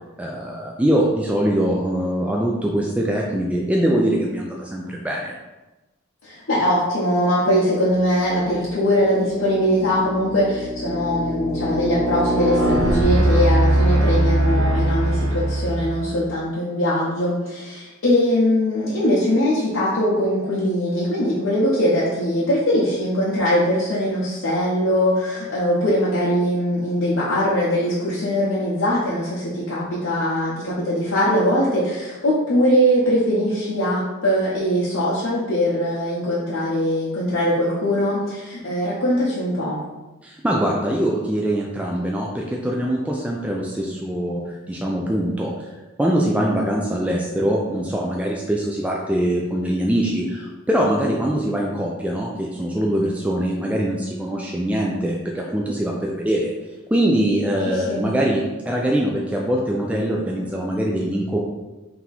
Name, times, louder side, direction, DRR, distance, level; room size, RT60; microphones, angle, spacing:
voice 1, 0.2-5.3 40.2-45.7 46.0-56.5 56.9-61.4, right 1 dB, 5° right, -2 dB, 0.3 m, -23 dB
voice 2, 6.2-39.8 57.6-58.0, equal, 80° left, -8 dB, 0.9 m, -21 dB
sound 1, 8.4-8.7 9.3-16.2, right 1 dB, 85° right, 0.7 m, -21 dB
3.5 x 2.9 x 4.0 m, 1.1 s
head